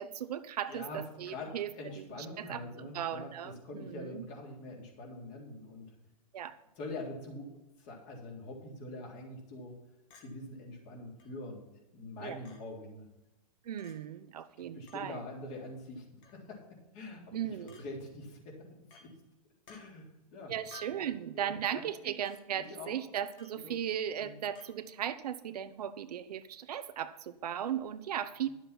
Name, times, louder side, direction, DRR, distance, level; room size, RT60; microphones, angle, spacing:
voice 1, 0.0-1.7 2.0-4.2 6.3-6.6 12.2-12.4 13.6-15.2 17.3-17.8 20.5-28.5, right 9 dB, 75° right, 11 dB, 0.9 m, -37 dB
voice 2, 0.7-6.0 6.8-7.5 7.8-9.7 10.2-11.6 11.9-13.1 14.7-18.7 19.0-19.1 19.7-20.5 20.9-21.1 21.3-21.9 22.5-22.9 23.6-23.7 24.2-24.3 28.4-28.5, left 2 dB, 35° left, -1 dB, 3.6 m, -44 dB
Chink clink, 10.1-10.3 11.2-11.3 12.4-12.6 13.8-13.9 14.9-15.0 16.2-16.4 17.7-17.8 18.9-19.1 19.7-19.8 20.7-21.1 22.3-22.4 23.4-23.6 24.6-24.7, left 4 dB, 55° left, 2.5 m, -54 dB
11.5 x 7.3 x 5.9 m, 0.96 s
hypercardioid pair, 140°, 20 cm